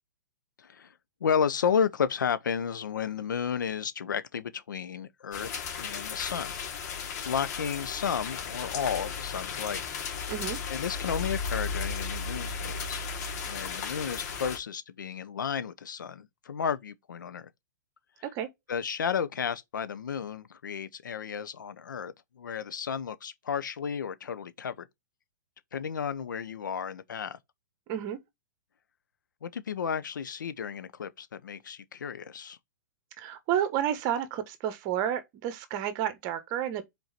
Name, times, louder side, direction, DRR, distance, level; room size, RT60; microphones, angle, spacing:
voice 1, 0.6-0.9 1.2-6.6 6.8-7.0 7.2-9.8 10.7-13.1 13.5-17.5 18.7-24.9 25.7-27.4 29.4-32.6, left 7 dB, 80° left, 1.0 m, -32 dB
sound 1, 5.3-14.6, left 5 dB, 55° left, 2.6 m, -35 dB
voice 2, 10.3-10.6 18.3-18.5 27.9-28.2 33.2-36.8, right 10 dB, 40° right, 1.5 m, -30 dB
5.3 x 4.5 x 5.9 m
hypercardioid pair, 125°, 10 cm